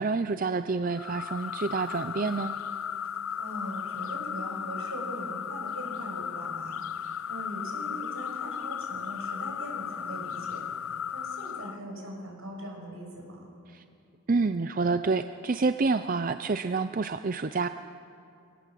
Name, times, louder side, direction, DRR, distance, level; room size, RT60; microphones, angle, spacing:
voice 1, 0.0-2.5 13.7-13.8 14.3-17.7, right 4 dB, 40° right, 10 dB, 0.5 m, -28 dB
sound 1, 0.9-11.8, left 8 dB, 75° left, 0.6 m, -35 dB
voice 2, 3.4-13.4, right 1 dB, 75° right, 1 dB, 6.0 m, -41 dB
24.0 x 18.0 x 7.6 m, 2.6 s
head